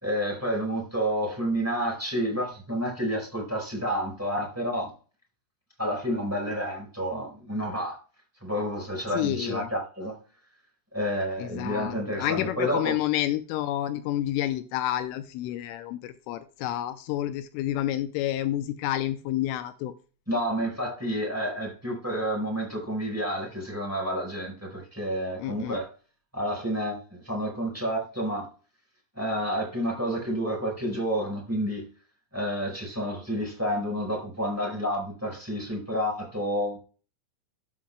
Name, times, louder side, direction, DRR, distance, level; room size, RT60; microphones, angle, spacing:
voice 1, 0.0-4.9 5.8-8.0 8.4-10.2 10.9-12.9 20.3-25.9 26.3-28.5 29.2-31.8 32.3-36.8, equal, 5° right, 3.9 m, -29 dB
voice 2, 9.1-9.7 11.4-19.9 25.4-25.8, left 13 dB, 85° left, 3.0 m, -29 dB
13.0 x 8.7 x 2.2 m
omnidirectional pair, 6.0 m